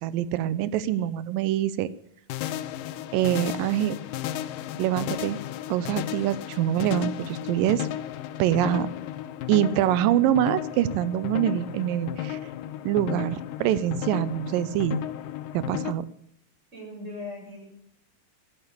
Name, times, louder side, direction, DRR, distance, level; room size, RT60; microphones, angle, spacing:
voice 1, 0.0-1.9 3.1-4.0 4.8-5.4 5.7-7.9 8.4-8.9 9.5-12.4 12.9-15.0 15.5-16.0, right 12 dB, 80° right, 16 dB, 2.3 m, -25 dB
sound 1, 2.3-15.9, left 12 dB, 80° left, 2.3 m, -34 dB
voice 2, 16.7-17.7, left 2 dB, 20° right, -3 dB, 8.2 m, -39 dB
14.0 x 8.9 x 8.4 m, 0.72 s
omnidirectional pair, 4.0 m